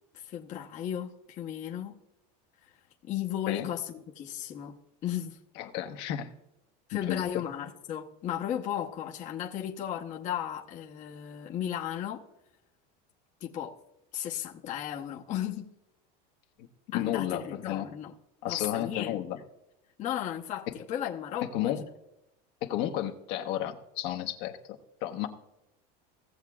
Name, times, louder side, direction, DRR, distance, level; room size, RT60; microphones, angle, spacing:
voice 1, 0.1-1.9 2.6-2.7 3.0-4.7 5.0-5.4 6.9-12.2 13.4-13.8 14.1-15.7 16.9-18.1 18.5-19.2 20.0-21.7, left 10 dB, 35° left, 1.0 m, -35 dB
voice 2, 5.6-6.3 6.9-7.2 16.9-17.9 18.4-19.4 20.7-20.8 21.5-21.8 22.6-24.6 25.0-25.3, left 12 dB, 60° left, 1.1 m, -32 dB
17.5 x 7.3 x 2.4 m
supercardioid pair, 145°, 21 cm